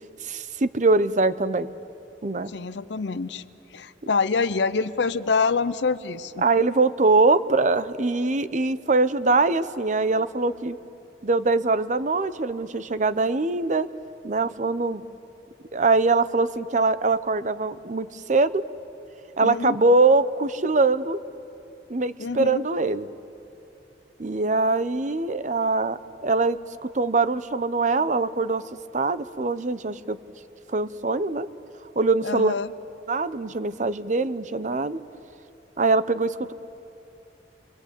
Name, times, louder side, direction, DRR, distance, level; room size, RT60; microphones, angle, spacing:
voice 1, 0.2-1.7 2.2-2.5 6.4-10.8 11.2-13.9 14.2-15.0 15.7-18.6 19.4-21.2 21.9-23.1 24.2-28.6 28.9-30.2 30.7-31.5 31.9-32.5 33.1-35.0 35.8-36.5, right 3 dB, 45° right, 14 dB, 0.7 m, -23 dB
voice 2, 2.5-3.4 3.7-6.4 19.4-19.8 22.2-22.6 32.2-32.7, left 4 dB, 80° left, 12 dB, 0.6 m, -26 dB
27.5 x 23.0 x 8.2 m, 2.8 s
head